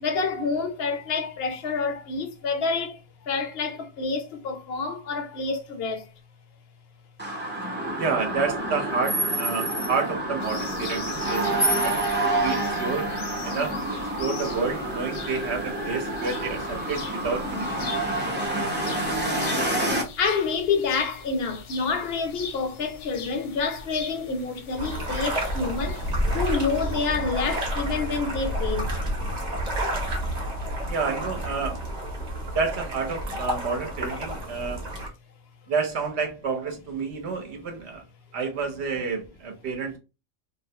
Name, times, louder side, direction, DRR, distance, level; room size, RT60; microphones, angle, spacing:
voice 1, 0.0-2.9 3.3-6.0 20.2-26.0 26.3-28.9, left 4 dB, 65° left, 0.7 m, -28 dB
sound 1, 7.2-20.0, right 1 dB, 15° right, 0.4 m, -28 dB
voice 2, 8.0-13.1 13.4-17.9 30.9-31.8 32.5-34.8 35.7-38.0 38.3-40.0, right 4 dB, 65° right, 0.9 m, -29 dB
sound 2, 10.4-27.7, left 5 dB, 90° left, 1.0 m, -42 dB
sound 3, 24.8-35.1, equal, 40° right, 0.7 m, -30 dB
2.4 x 2.1 x 2.7 m
omnidirectional pair, 1.3 m